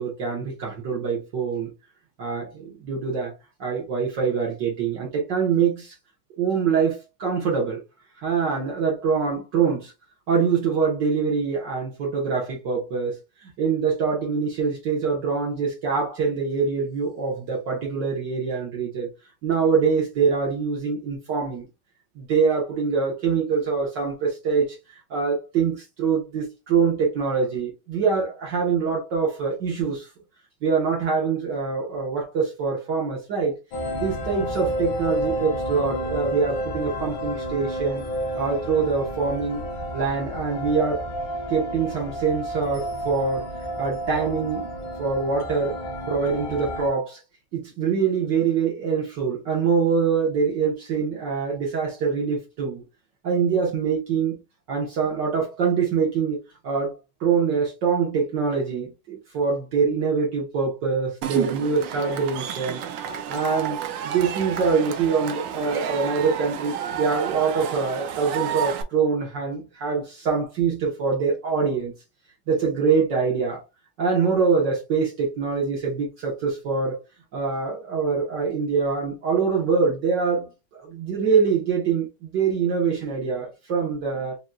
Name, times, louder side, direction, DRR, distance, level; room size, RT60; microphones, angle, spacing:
voice 1, 0.0-1.7 2.2-3.4 3.6-5.9 6.4-7.8 8.2-9.9 10.3-13.1 13.4-19.1 19.4-21.7 22.2-30.1 30.6-33.6 33.9-38.0 38.4-39.6 39.9-41.1 41.5-43.5 43.8-44.7 45.0-45.8 46.1-47.2 47.5-52.8 53.2-54.4 54.7-56.4 56.6-56.9 57.2-63.8 64.0-71.9 72.5-73.6 74.0-77.0 77.3-80.5 80.8-84.4, right 5 dB, 60° right, 1.8 m, -24 dB
sound 1, 33.7-46.9, equal, 70° left, 1.9 m, -31 dB
Cheering / Crowd, 61.2-68.8, right 9 dB, 90° right, 1.5 m, -30 dB
5.1 x 2.9 x 2.3 m
omnidirectional pair, 2.3 m